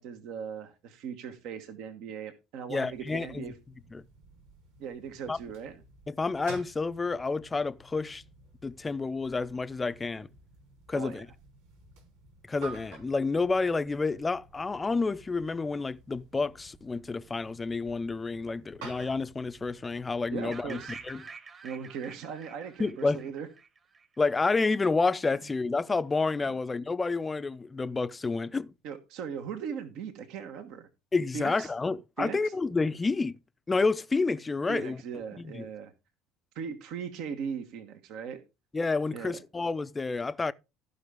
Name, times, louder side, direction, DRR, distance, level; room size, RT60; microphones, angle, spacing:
voice 1, 0.0-3.5 4.8-5.8 10.9-11.2 20.3-21.0 21.6-23.5 28.8-30.9 31.3-31.7 32.2-32.5 34.7-35.9 36.5-38.4 39.1-39.4, right 7 dB, 60° right, 1.3 m, -38 dB
voice 2, 2.7-3.4 3.9-4.0 5.3-5.4 6.1-8.2 8.6-10.3 10.9-11.3 12.5-21.2 22.8-23.2 24.2-28.7 31.1-33.4 33.7-35.0 35.4-35.7 38.7-40.5, left 3 dB, 20° left, 0.6 m, -29 dB
sound 1, 2.8-21.2, right 3 dB, 80° right, 3.9 m, -52 dB
sound 2, 20.5-24.4, right 5 dB, 35° right, 1.6 m, -47 dB
15.0 x 5.7 x 3.6 m
hypercardioid pair, 65°, 0 cm